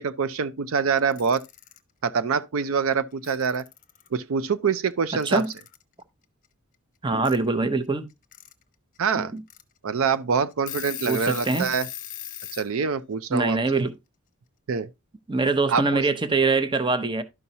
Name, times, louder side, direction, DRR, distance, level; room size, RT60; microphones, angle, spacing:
voice 1, 0.0-1.4 2.0-3.6 4.1-5.4 9.0-9.3 9.8-11.9 12.5-13.8 14.7-14.9 15.7-16.0, right 6 dB, 70° right, 0.5 m, -25 dB
Alarm / Clock, 1.0-1.8 2.9-3.0 3.2-4.1 5.2-5.8 7.2-7.4 8.1-8.5 9.0-9.1 9.5-9.6 10.1-10.2 10.5-12.7, left 13 dB, 40° left, 0.9 m, -38 dB
voice 2, 7.0-8.1 9.2-9.4 11.1-11.7 13.3-13.9 15.3-17.2, right 3 dB, 20° right, 0.7 m, -23 dB
12.0 x 5.5 x 2.8 m
head